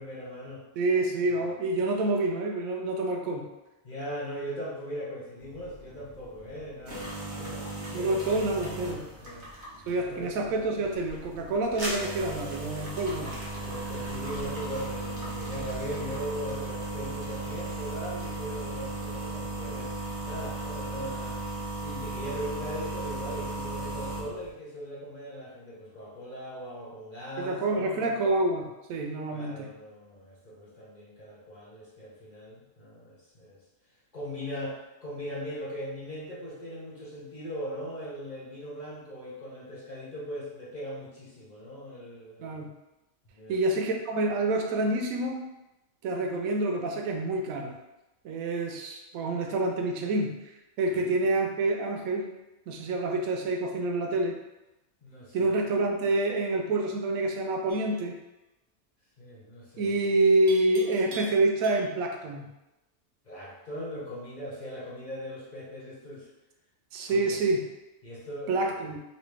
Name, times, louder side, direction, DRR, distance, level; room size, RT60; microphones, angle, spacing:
voice 1, 0.0-0.6 3.8-8.7 9.2-9.5 10.0-10.3 13.6-19.9 20.2-21.4 21.8-28.1 29.3-33.6 34.1-42.6 43.4-43.6 50.9-51.0 55.0-55.6 59.2-60.0 63.2-66.3 67.1-67.4 68.0-68.6, equal, 40° left, -7 dB, 0.7 m, -39 dB
voice 2, 0.8-3.5 7.9-9.0 9.9-13.3 27.4-29.7 42.4-42.7 43.5-45.4 46.0-47.7 48.2-50.4 50.8-52.3 52.7-54.4 55.3-58.2 59.8-62.5 66.9-67.7 68.5-69.0, right 2 dB, 90° right, 3 dB, 1.0 m, -27 dB
sound 1, 5.4-24.5, right 2 dB, 45° right, 1.0 m, -37 dB
sound 2, 10.9-15.9, equal, 25° right, 0.6 m, -43 dB
Livestock farm animals working animals, 57.7-58.0 60.5-62.1, right 3 dB, 65° right, 0.5 m, -44 dB
3.1 x 2.7 x 3.2 m, 0.98 s
omnidirectional pair, 1.4 m